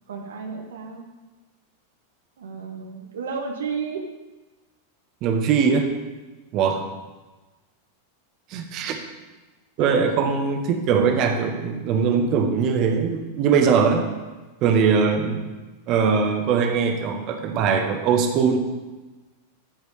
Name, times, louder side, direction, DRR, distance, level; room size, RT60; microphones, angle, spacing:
voice 1, 0.1-1.1 2.4-4.0 9.8-10.0, right 5 dB, 65° right, 3 dB, 1.0 m, -32 dB
voice 2, 5.2-5.9 6.5-6.9 8.5-9.0 9.8-14.1 14.6-15.5 15.9-18.6, right 6 dB, 40° right, 5 dB, 1.2 m, -21 dB
13.0 x 5.1 x 4.9 m, 1.2 s
figure-of-eight pair, 90°, 0 cm